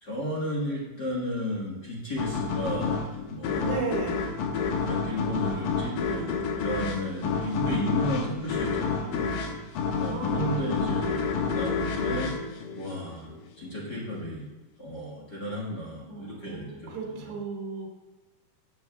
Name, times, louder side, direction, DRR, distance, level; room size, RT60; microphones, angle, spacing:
voice 1, 0.0-3.8 4.7-9.3 10.0-12.3 12.7-14.5 14.8-17.3, left 1 dB, 50° left, -5 dB, 1.2 m, -33 dB
sound 1, 2.2-13.4, left 5 dB, 75° left, 2.2 m, -29 dB
voice 2, 3.6-4.2 7.2-7.4 10.1-10.7 16.1-17.9, right 4 dB, 85° right, -1 dB, 3.8 m, -35 dB
14.5 x 7.7 x 2.3 m, 1.1 s
omnidirectional pair, 4.6 m